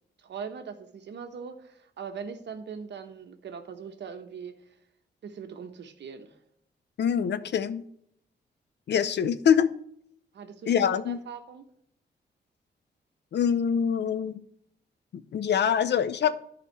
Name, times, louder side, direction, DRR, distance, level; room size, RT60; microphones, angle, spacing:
voice 1, 0.2-4.5 5.2-6.3 10.3-11.7, right 6 dB, 75° right, 6 dB, 1.2 m, -41 dB
voice 2, 7.0-7.8 8.9-9.7 10.7-11.2 13.3-14.4 15.1-16.3, left 8 dB, 70° left, 14 dB, 0.7 m, -24 dB
11.0 x 5.1 x 4.6 m, 0.70 s
cardioid pair, 75°, 18 cm